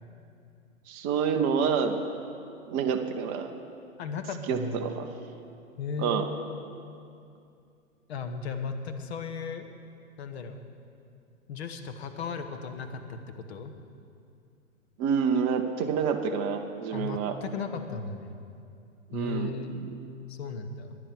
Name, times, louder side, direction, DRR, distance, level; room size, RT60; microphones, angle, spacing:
voice 1, 0.9-2.0 2.7-3.5 4.5-5.1 6.0-6.3 15.0-17.3 19.1-19.8, right 6 dB, 15° right, 5 dB, 0.5 m, -28 dB
voice 2, 4.0-4.9 5.8-6.3 8.1-9.7 10.2-10.6 11.5-13.2 13.5-13.7 16.9-18.3 19.1-19.7 20.3-21.0, left 5 dB, 50° left, 7 dB, 1.4 m, -36 dB
11.0 x 10.0 x 9.1 m, 2.5 s
hypercardioid pair, 135°, 41 cm